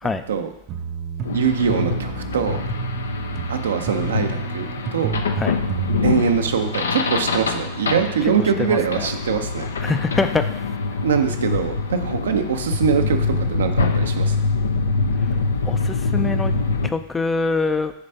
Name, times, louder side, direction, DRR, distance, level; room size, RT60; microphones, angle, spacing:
sound 1, 0.7-6.0, right 7 dB, 35° right, 0.6 m, -30 dB
sound 2, 1.3-16.9, left 3 dB, 80° left, 0.6 m, -24 dB
voice 1, 1.3-2.6 3.5-5.2 6.0-9.6 11.0-14.5, right 7 dB, 75° right, 6 dB, 0.6 m, -23 dB
voice 2, 8.6-9.1 9.8-10.5 15.2-15.4 15.6-17.9, left 3 dB, 15° left, 9 dB, 0.4 m, -24 dB
6.8 x 3.3 x 5.5 m, 0.80 s
hypercardioid pair, 100°, 0 cm